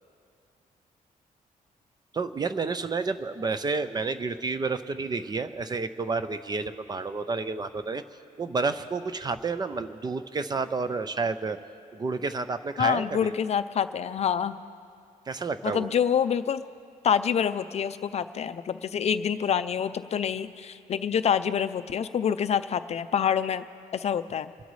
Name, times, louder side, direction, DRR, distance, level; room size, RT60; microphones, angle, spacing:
voice 1, 2.1-8.0 8.4-11.6 11.9-13.3 15.3-15.9, right 4 dB, 30° right, 11 dB, 0.5 m, -30 dB
voice 2, 12.8-14.6 15.6-16.6 17.0-23.7 23.9-24.5, left 8 dB, 45° left, 11 dB, 0.5 m, -26 dB
27.0 x 12.0 x 3.2 m, 2.4 s
wide cardioid pair, 145°, 15 cm